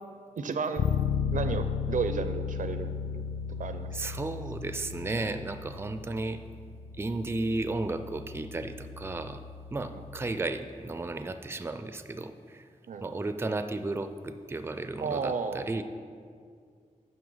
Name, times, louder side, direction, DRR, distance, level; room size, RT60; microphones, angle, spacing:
voice 1, 0.4-0.8 1.3-3.0 3.6-3.9 9.9-10.0 12.9-13.1 15.0-15.7, right 5 dB, 80° right, 10 dB, 0.5 m, -32 dB
Bass guitar, 0.8-10.5, left 6 dB, 80° left, 0.4 m, -35 dB
voice 2, 3.9-6.4 7.0-9.4 9.7-12.7 13.0-15.8, right 2 dB, 20° right, 10 dB, 0.4 m, -34 dB
7.7 x 5.5 x 5.5 m, 2.2 s
wide cardioid pair, 95°, 13 cm